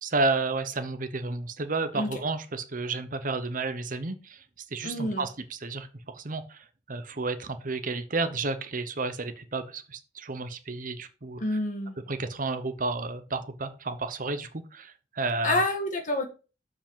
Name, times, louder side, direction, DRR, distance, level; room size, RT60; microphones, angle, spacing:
voice 1, 0.0-4.4 4.7-11.4 12.1-15.6, right 3 dB, 50° right, 10 dB, 1.0 m, -31 dB
voice 2, 4.8-5.2 11.4-12.0 15.4-16.2, left 1 dB, 45° left, 5 dB, 1.9 m, -28 dB
7.2 x 5.0 x 5.7 m, 0.33 s
head